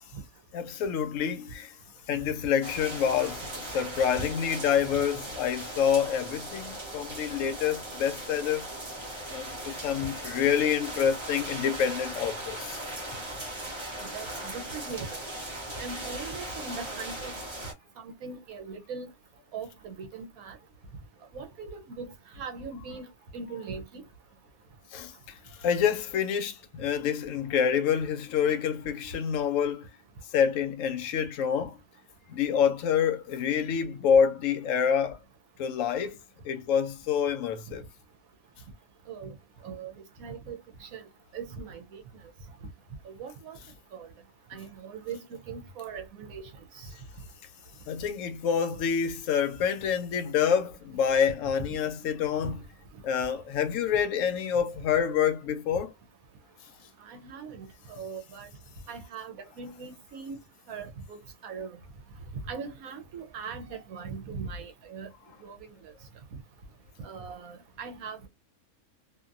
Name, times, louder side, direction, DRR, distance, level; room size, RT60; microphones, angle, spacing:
voice 1, 0.5-1.7 2.1-8.6 9.3-12.8 24.9-25.1 25.6-29.9 30.3-31.8 32.3-35.2 35.6-36.2 36.4-37.8 47.9-52.6 53.0-55.9, left 7 dB, 70° left, 0.9 m, -27 dB
sound 1, 2.6-17.7, right 1 dB, 25° right, 0.8 m, -38 dB
voice 2, 14.1-15.2 15.8-17.3 18.0-19.1 19.5-20.6 21.3-22.1 22.4-23.1 23.3-24.0 39.1-39.3 39.6-39.9 40.2-41.0 41.3-42.0 43.0-43.6 43.9-44.1 44.5-46.5 52.4-52.5 57.0-58.5 58.9-60.4 60.7-61.8 62.5-65.1 65.4-65.6 67.0-68.3, right 5 dB, 75° right, 1.1 m, -40 dB
2.8 x 2.5 x 2.5 m
omnidirectional pair, 1.5 m